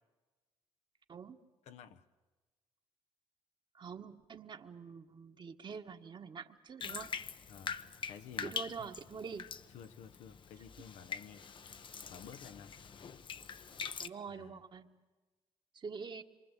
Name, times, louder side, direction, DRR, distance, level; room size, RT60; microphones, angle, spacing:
voice 1, 1.7-2.0 7.5-7.8 8.1-8.9 9.7-11.5 12.1-12.7 14.4-14.6, left 8 dB, 75° left, 9 dB, 1.1 m, -52 dB
voice 2, 3.7-7.1 8.4-9.6 14.0-15.0 15.7-16.2, right 5 dB, 45° right, 6 dB, 1.6 m, -46 dB
Bathtub (filling or washing), 6.8-14.1, left 6 dB, 45° left, 0.9 m, -44 dB
26.0 x 24.0 x 8.3 m, 1.3 s
supercardioid pair, 75°, 11 cm